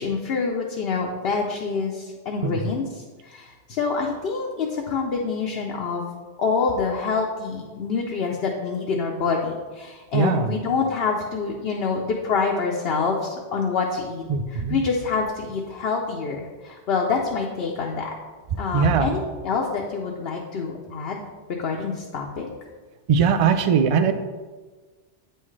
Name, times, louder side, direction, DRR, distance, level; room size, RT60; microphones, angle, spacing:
voice 1, 0.0-6.1 6.4-18.1 18.6-21.2 21.5-22.5, left 5 dB, 70° left, -1 dB, 0.9 m, -26 dB
voice 2, 10.1-10.5 14.3-14.8 18.7-19.1 23.1-24.1, right 6 dB, 45° right, 8 dB, 0.4 m, -20 dB
8.4 x 5.6 x 3.2 m, 1.4 s
omnidirectional pair, 1.1 m